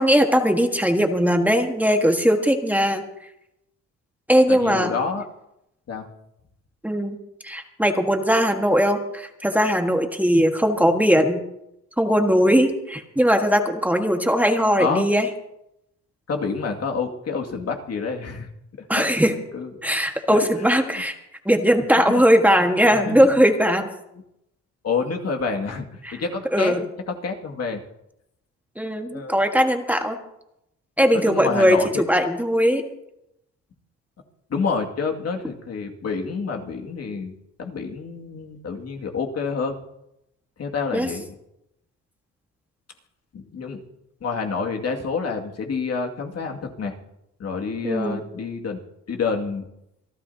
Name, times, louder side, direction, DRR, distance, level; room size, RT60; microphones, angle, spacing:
voice 1, 0.0-3.0 4.3-4.9 6.8-7.2 7.4-11.4 12.0-15.3 18.9-19.3 19.8-21.1 21.4-23.9 26.0-26.2 26.5-26.8 28.8-30.2 31.0-31.8 32.1-32.8 40.9-41.1 47.8-48.3, equal, 5° right, 4 dB, 1.6 m, -19 dB
voice 2, 4.5-5.2 5.9-6.1 14.8-15.0 16.3-18.5 18.9-19.1 19.5-19.9 20.3-20.7 22.1-22.2 22.9-23.3 24.8-26.7 27.1-27.8 29.1-29.4 31.1-32.0 34.5-37.3 37.6-39.8 40.6-41.3 43.3-43.8 44.2-46.9 47.4-48.8 49.1-49.6, left 5 dB, 55° left, 2 dB, 2.3 m, -28 dB
27.5 x 12.5 x 2.8 m, 0.83 s
cardioid pair, 90°, 30 cm